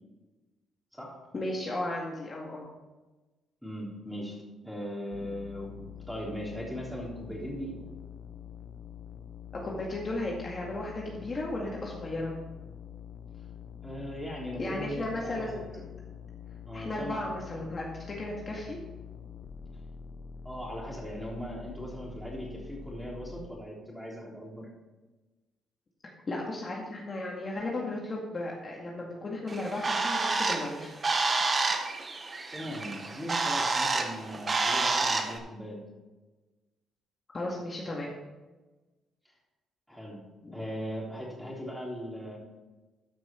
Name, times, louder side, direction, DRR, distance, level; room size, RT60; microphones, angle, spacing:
voice 1, 1.3-2.7 9.6-12.3 14.6-15.9 16.7-18.8 26.3-30.9 32.6-32.7 37.3-38.1 40.4-40.6, left 2 dB, 35° left, -2 dB, 2.0 m, -35 dB
voice 2, 3.6-7.8 13.8-15.6 16.7-17.3 20.4-24.7 32.5-35.8 39.3-39.4 39.9-40.2 40.5-42.4, equal, ahead, -4 dB, 3.5 m, -39 dB
sound 1, 5.1-23.5, left 7 dB, 60° left, 0.7 m, -46 dB
Bird, 29.5-35.4, right 3 dB, 35° right, 1.2 m, -29 dB
13.0 x 6.1 x 4.5 m, 1.2 s
cardioid pair, 90°, 0 cm